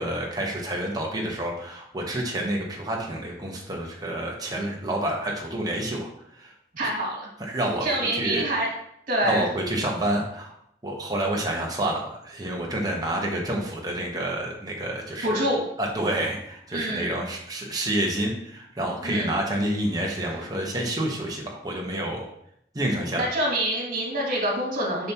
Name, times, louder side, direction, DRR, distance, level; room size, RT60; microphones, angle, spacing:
voice 1, 0.0-6.1 6.4-6.5 7.4-8.4 9.2-10.5 10.8-15.4 15.8-22.2 22.7-23.3, right 1 dB, 20° right, -1 dB, 1.2 m, -28 dB
voice 2, 6.7-7.3 7.8-8.7 9.1-9.5 15.2-15.6 16.7-17.2 19.0-19.4 23.2-25.1, right 1 dB, 50° right, -2 dB, 2.3 m, -26 dB
7.2 x 5.8 x 3.0 m, 0.72 s
head